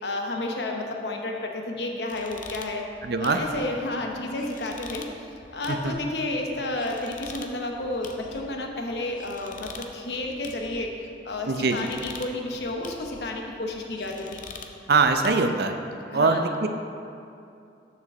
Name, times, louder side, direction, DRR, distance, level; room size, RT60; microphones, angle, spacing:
voice 1, 0.0-2.8 3.2-5.1 5.5-14.4 16.1-16.4, left 2 dB, 70° left, 1 dB, 0.9 m, -31 dB
sound 1, 2.1-15.3, left 4 dB, 50° left, 0.6 m, -45 dB
voice 2, 3.0-3.4 5.7-6.0 11.5-11.9 14.9-15.7 16.1-16.7, right 4 dB, 65° right, 6 dB, 0.5 m, -22 dB
6.8 x 5.1 x 6.7 m, 2.6 s
head